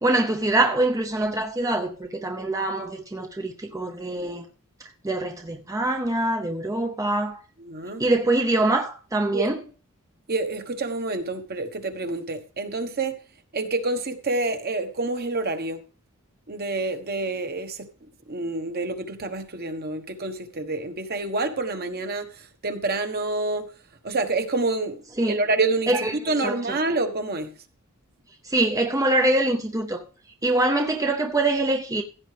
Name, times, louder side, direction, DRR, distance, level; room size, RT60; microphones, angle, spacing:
voice 1, 0.0-4.4 5.0-7.4 8.0-9.6 25.2-25.4 25.9-26.8 28.4-30.0 30.4-32.0, right 2 dB, 15° right, 0.6 m, -24 dB
voice 2, 7.6-8.0 9.3-9.5 10.3-13.2 13.5-15.8 16.5-17.9 18.3-23.7 24.0-25.9 26.2-27.5, right 3 dB, 45° right, 1.3 m, -27 dB
15.5 x 8.5 x 3.4 m
head